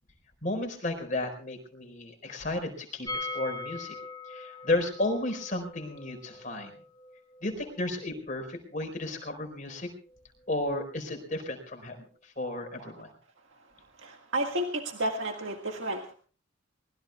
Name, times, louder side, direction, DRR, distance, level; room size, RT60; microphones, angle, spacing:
voice 1, 0.4-3.9 4.3-6.7 7.4-9.9 10.5-13.1, left 2 dB, 40° left, 4 dB, 4.6 m, -33 dB
sound 1, 3.1-8.8 9.1-9.2 9.4-9.5, left 3 dB, 20° left, 2.6 m, -41 dB
voice 2, 14.0-16.1, right 1 dB, 75° right, 3 dB, 1.8 m, -31 dB
24.5 x 20.5 x 2.3 m, 0.41 s
head